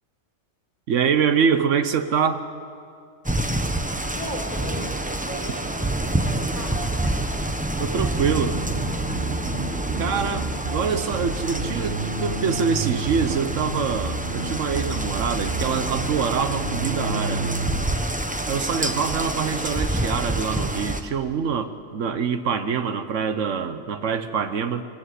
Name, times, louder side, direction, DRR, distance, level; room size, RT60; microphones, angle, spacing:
voice 1, 0.9-2.4 7.8-8.6 10.0-17.6 18.5-24.8, right 6 dB, 75° right, 10 dB, 1.2 m, -25 dB
sound 1, 3.2-21.0, right 1 dB, 10° right, 0.7 m, -28 dB
voice 2, 4.1-6.7, equal, 25° left, -2 dB, 4.2 m, -37 dB
sound 2, 5.1-6.7 7.0-9.4 10.1-10.2, left 1 dB, 10° left, 2.6 m, -49 dB
Bass guitar, 8.3-17.8, right 2 dB, 50° right, 1.5 m, -30 dB
23.5 x 15.5 x 8.3 m, 2.3 s
omnidirectional pair, 1.3 m